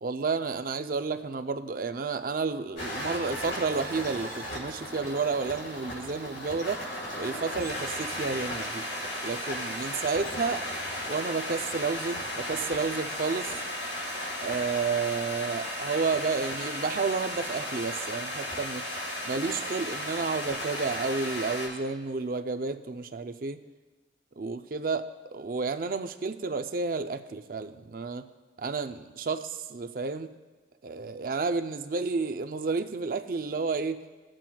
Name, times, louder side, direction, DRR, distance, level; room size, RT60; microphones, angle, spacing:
voice 1, 0.0-6.8 7.1-8.8 9.2-10.7 11.1-13.5 14.4-18.8 19.3-23.6 24.4-28.3 28.6-30.3 30.8-34.0, right 4 dB, 50° right, 9 dB, 0.5 m, -31 dB
sound 1, 2.8-21.7, left 1 dB, 75° left, 3.6 m, -35 dB
20.0 x 7.5 x 2.3 m, 1.3 s
head